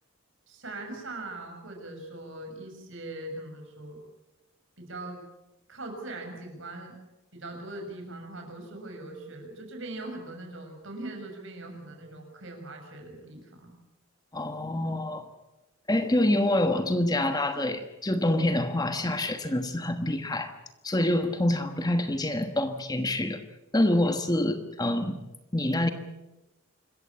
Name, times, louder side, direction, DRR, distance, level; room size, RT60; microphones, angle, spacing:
voice 1, 0.5-4.0 4.8-5.2 5.7-7.0 7.3-13.7, right 2 dB, 60° right, 3 dB, 6.4 m, -41 dB
voice 2, 14.3-15.2 15.9-20.5 20.8-23.4 23.7-25.2 25.5-25.9, left 1 dB, 20° left, 8 dB, 1.3 m, -26 dB
26.0 x 14.5 x 8.6 m, 1.0 s
head